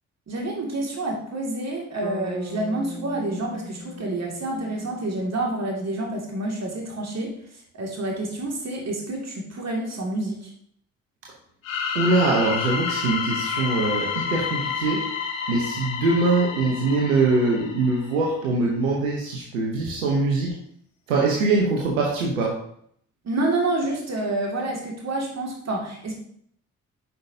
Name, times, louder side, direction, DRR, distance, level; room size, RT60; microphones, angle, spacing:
voice 1, 0.3-7.3 7.7-10.5 23.2-26.1, right 2 dB, 45° right, -1 dB, 2.2 m, -28 dB
Bass guitar, 2.0-6.1, left 2 dB, 15° left, 2.3 m, -40 dB
sound 1, 11.6-18.3, left 6 dB, 85° left, 0.7 m, -29 dB
voice 2, 11.9-15.0 15.5-20.5 21.1-22.6, right 3 dB, 85° right, -2 dB, 0.9 m, -23 dB
7.6 x 5.6 x 2.7 m, 0.67 s
figure-of-eight pair, 40°, 38 cm